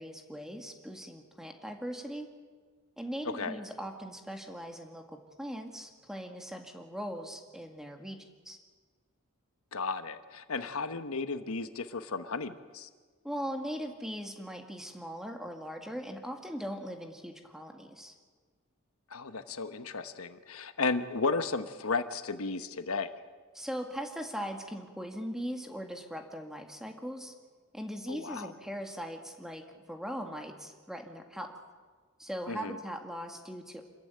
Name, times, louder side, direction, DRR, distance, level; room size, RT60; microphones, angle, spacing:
voice 1, 0.0-2.3 3.0-5.0 5.4-8.2 8.5-8.6 13.2-18.1 23.5-27.3 27.7-31.5 32.2-33.8, equal, ahead, 4 dB, 1.9 m, -40 dB
voice 2, 3.2-3.6 9.7-12.9 19.1-23.1 28.1-28.5 32.5-32.8, left 4 dB, 85° left, 10 dB, 1.1 m, -34 dB
26.5 x 14.0 x 9.2 m, 1.5 s
head